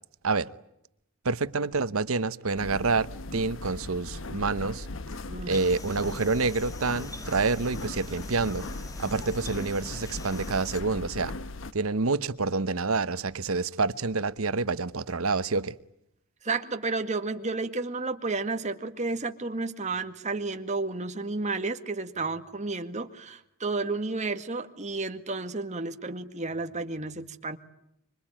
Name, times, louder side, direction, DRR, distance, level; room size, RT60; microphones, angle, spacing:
voice 1, 1.2-4.9 5.5-8.7 9.0-11.3 11.7-15.8, right 3 dB, 85° right, 1.0 m, -28 dB
sound 1, 2.6-11.7, left 2 dB, 65° left, 1.1 m, -38 dB
sound 2, 5.5-10.8, left 2 dB, 15° left, 1.7 m, -45 dB
voice 2, 16.4-27.6, right 3 dB, 35° right, 1.9 m, -32 dB
25.5 x 25.5 x 9.0 m
head